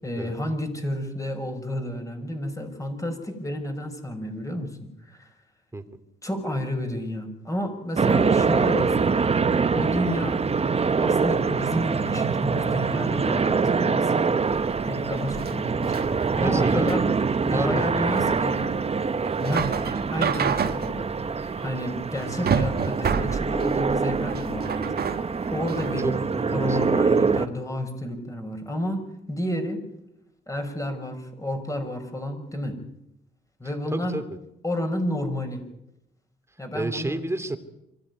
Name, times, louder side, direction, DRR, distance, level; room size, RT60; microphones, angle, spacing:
voice 1, 0.0-5.3 6.2-9.2 9.7-10.4 11.0-14.3 14.9-17.1 17.4-18.7 19.4-19.7 20.1-25.1 25.5-26.1 26.5-29.9 30.5-32.8 33.6-34.2 34.6-35.6 36.6-37.2, left 1 dB, 15° left, 6 dB, 5.9 m, -31 dB
sound 1, 8.0-27.5, right 5 dB, 30° right, 1.2 m, -24 dB
sound 2, 14.4-26.0, right 7 dB, 50° right, 2.0 m, -30 dB
voice 2, 16.3-17.0 17.4-17.9 18.2-18.4 26.0-27.0 33.9-34.4 36.7-37.6, right 2 dB, 15° right, 9 dB, 2.7 m, -30 dB
24.5 x 15.5 x 9.7 m, 0.85 s
cardioid pair, 90°, 20 cm